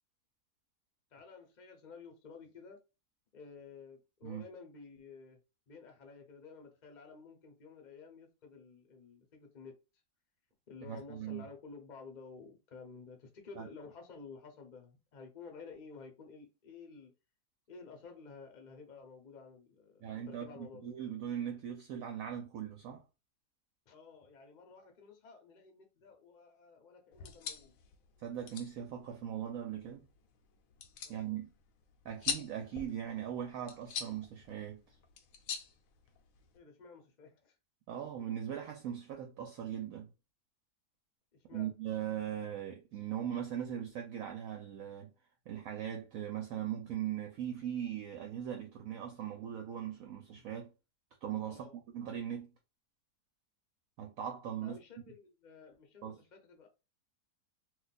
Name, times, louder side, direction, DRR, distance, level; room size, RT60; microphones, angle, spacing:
voice 1, 1.1-2.8 3.3-5.4 5.7-9.8 10.7-17.1 17.7-20.9 23.9-27.8 31.0-31.4 36.5-37.6 41.3-41.7 51.5-51.7 54.6-56.7, left 5 dB, 40° left, 0.7 m, -52 dB
voice 2, 10.8-11.5 13.6-13.7 20.0-23.0 28.2-30.1 31.1-31.5 32.0-34.8 37.9-40.1 41.5-45.1 45.5-50.7 51.2-51.7 51.9-52.5 54.0-54.8 56.0-56.2, right 10 dB, 70° right, 0.9 m, -39 dB
sound 1, 27.1-36.6, left 7 dB, 70° left, 0.9 m, -44 dB
2.5 x 2.4 x 4.0 m
omnidirectional pair, 1.7 m